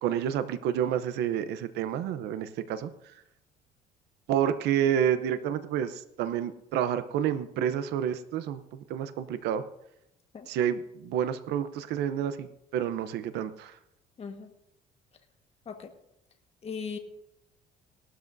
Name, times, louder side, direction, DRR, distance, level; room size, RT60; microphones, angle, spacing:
voice 1, 0.0-2.9 4.3-8.6 8.9-9.6 10.5-12.5 12.7-13.7, right 9 dB, 80° right, 11 dB, 0.8 m, -29 dB
voice 2, 14.2-14.5 15.7-15.9 16.6-17.0, left 5 dB, 35° left, 5 dB, 1.5 m, -38 dB
18.5 x 12.5 x 2.7 m, 0.84 s
cardioid pair, 110°, 17 cm